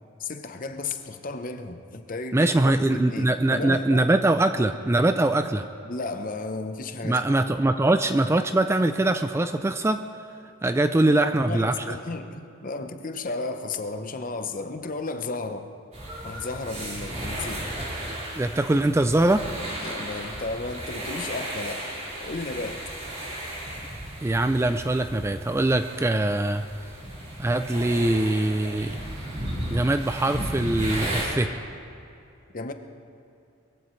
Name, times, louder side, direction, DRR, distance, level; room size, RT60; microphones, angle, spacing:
voice 1, 0.2-4.1 5.8-7.2 11.0-15.7 16.2-17.7 19.8-21.9 22.2-22.8 32.5-32.7, left 3 dB, 40° left, 7 dB, 0.8 m, -33 dB
voice 2, 2.3-5.7 7.0-10.0 10.6-12.0 18.4-19.4 24.2-26.6 27.4-29.0 29.7-31.5, right 2 dB, 15° right, 9 dB, 0.3 m, -22 dB
sound 1, 15.9-31.2, right 1 dB, 35° right, 4.3 m, -34 dB
22.0 x 15.5 x 3.2 m, 2.6 s
head